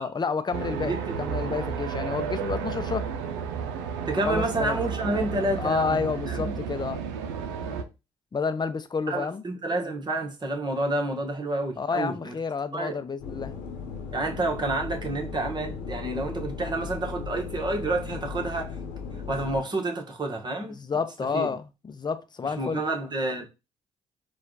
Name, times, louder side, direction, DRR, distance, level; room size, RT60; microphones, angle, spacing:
voice 1, 0.0-0.9 1.2-3.1 4.2-4.8 5.6-7.0 8.3-9.4 11.8-13.5 20.7-22.8, left 5 dB, 30° left, 0.7 m, -29 dB
sound 1, 0.5-7.8, right 6 dB, 80° right, 0.6 m, -32 dB
voice 2, 0.8-1.2 4.1-6.5 9.1-12.3 12.7-13.0 14.1-18.8 19.3-20.8 21.3-21.5 22.4-23.4, right 2 dB, 30° right, 1.5 m, -29 dB
sound 2, 13.2-19.6, left 5 dB, 75° left, 1.0 m, -37 dB
4.4 x 2.5 x 3.9 m
hypercardioid pair, 50°, 14 cm